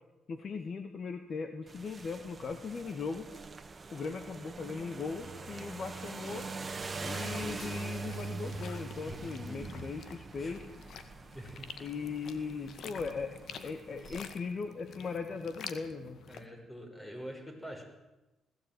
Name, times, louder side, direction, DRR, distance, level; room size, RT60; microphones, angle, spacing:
voice 1, 0.3-3.3 3.9-6.5 7.0-10.6 11.8-13.3 13.6-16.2, left 5 dB, 50° left, 7 dB, 1.9 m, -38 dB
sound 1, 1.7-14.2, right 4 dB, 30° right, 1.9 m, -43 dB
sound 2, 5.2-16.5, left 6 dB, 65° left, 2.0 m, -50 dB
voice 2, 9.5-9.9 10.4-10.6 11.3-11.7 16.3-17.8, equal, 15° left, 4 dB, 6.6 m, -45 dB
20.5 x 16.0 x 9.4 m, 1.0 s
cardioid pair, 90°, 0 cm